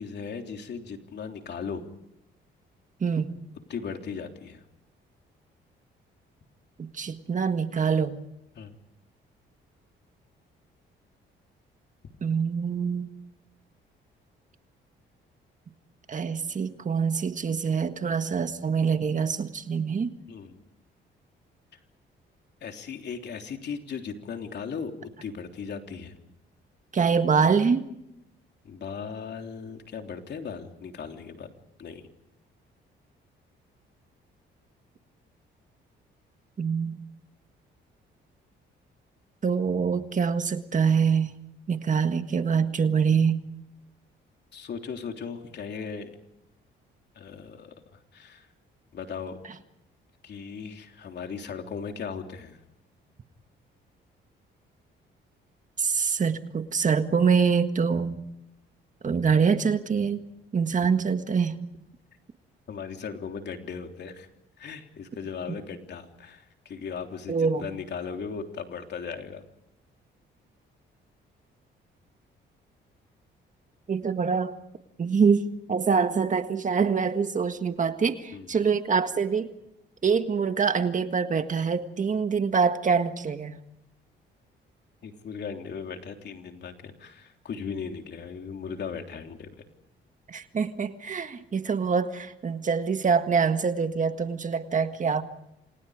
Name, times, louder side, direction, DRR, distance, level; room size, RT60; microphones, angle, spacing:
voice 1, 0.0-1.8 3.7-4.6 8.6-8.7 20.3-20.6 22.6-26.2 28.6-31.5 31.8-32.0 44.5-46.1 47.2-48.5 48.9-49.4 50.2-52.6 62.7-64.3 64.6-69.4 78.3-78.5 85.0-89.6, left 6 dB, 60° left, 4 dB, 3.4 m, -37 dB
voice 2, 3.0-3.3 6.8-8.2 12.2-13.1 16.1-20.1 26.9-27.9 36.6-37.0 39.4-41.3 41.7-43.4 55.8-58.2 59.0-60.2 60.5-61.6 67.3-67.7 73.9-74.6 75.0-75.4 75.7-79.5 80.0-83.6 90.3-95.2, right 6 dB, 40° right, 8 dB, 1.7 m, -25 dB
28.5 x 27.0 x 5.1 m, 0.84 s
cardioid pair, 90°, 20 cm